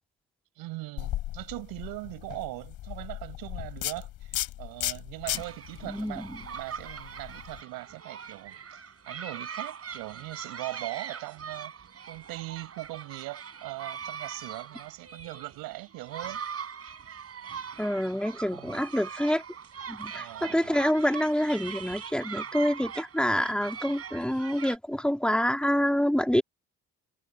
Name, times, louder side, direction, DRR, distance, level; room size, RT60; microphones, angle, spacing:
voice 1, 0.5-16.4 18.5-18.8 20.1-20.7, right 20 dB, 85° right, 6.7 m, -40 dB
sound 1, 1.0-7.6, left 14 dB, 75° left, 4.3 m, -36 dB
sound 2, 5.2-24.8, right 7 dB, 45° right, 4.2 m, -41 dB
voice 2, 5.8-6.4 17.8-19.4 19.9-26.4, equal, 5° left, 3.6 m, -27 dB
supercardioid pair, 75°, 34 cm